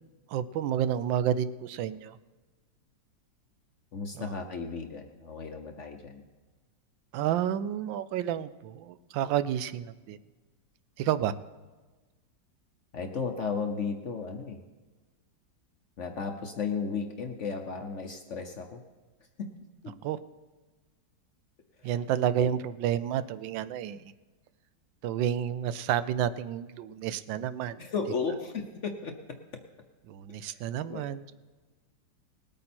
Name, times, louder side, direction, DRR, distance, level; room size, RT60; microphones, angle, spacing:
voice 1, 0.3-2.2 4.1-4.4 7.1-10.2 11.0-11.3 20.0-20.2 21.8-24.1 25.0-27.8 30.1-31.2, right 10 dB, 85° right, 14 dB, 1.3 m, -30 dB
voice 2, 3.9-6.2 12.9-14.6 16.0-18.8 19.4-19.5 19.8-20.0 21.8-21.9 22.4-22.5 27.8-29.6 30.4-30.6 30.9-31.0, left 5 dB, 55° left, 5 dB, 0.9 m, -35 dB
19.0 x 8.7 x 4.3 m, 1.3 s
omnidirectional pair, 2.0 m